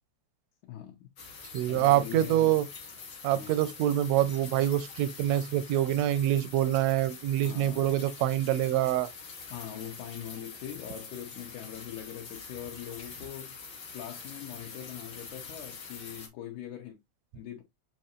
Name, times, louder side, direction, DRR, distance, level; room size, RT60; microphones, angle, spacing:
voice 1, 0.7-1.1 1.7-2.5 3.3-3.5 7.4-7.9 9.5-13.6 13.9-17.0 17.3-17.6, left 11 dB, 85° left, 2.2 m, -42 dB
sound 1, 1.2-16.3, left 4 dB, 70° left, 0.8 m, -45 dB
voice 2, 1.5-2.7 3.2-9.1, right 13 dB, 80° right, 1.5 m, -26 dB
7.1 x 2.8 x 2.4 m
omnidirectional pair, 3.3 m